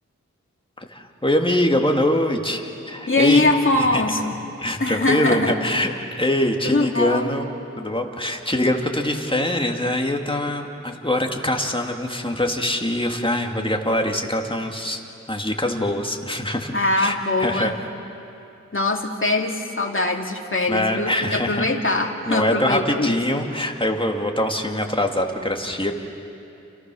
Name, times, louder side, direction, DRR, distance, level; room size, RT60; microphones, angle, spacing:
voice 1, 0.8-3.4 3.8-4.0 4.6-7.5 7.8-15.0 15.3-17.7 20.7-21.7 22.3-25.9, left 1 dB, 15° left, 2 dB, 2.5 m, -23 dB
voice 2, 3.1-4.4 4.8-5.6 6.6-7.3 16.7-17.8 18.7-23.2, left 2 dB, 45° left, 1 dB, 2.4 m, -22 dB
29.5 x 28.5 x 6.4 m, 2.8 s
wide cardioid pair, 50°, 29 cm